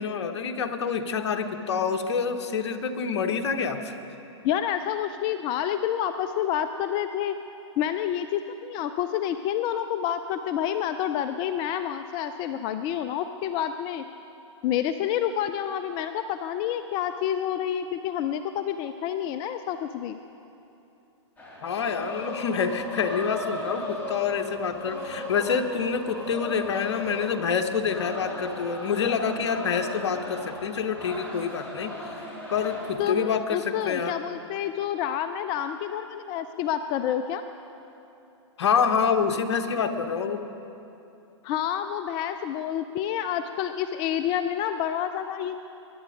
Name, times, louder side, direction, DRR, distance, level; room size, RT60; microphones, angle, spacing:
voice 1, 0.0-4.0 21.6-34.1 38.6-40.5, left 6 dB, 65° left, 7 dB, 1.1 m, -27 dB
voice 2, 4.4-7.3 7.8-14.0 14.6-20.2 33.0-37.4 41.4-45.5, left 10 dB, 30° left, 10 dB, 0.4 m, -28 dB
sound 1, 21.4-32.9, left 1 dB, 10° left, 3.2 m, -37 dB
21.5 x 10.5 x 5.2 m, 2.9 s
hypercardioid pair, 125°, 16 cm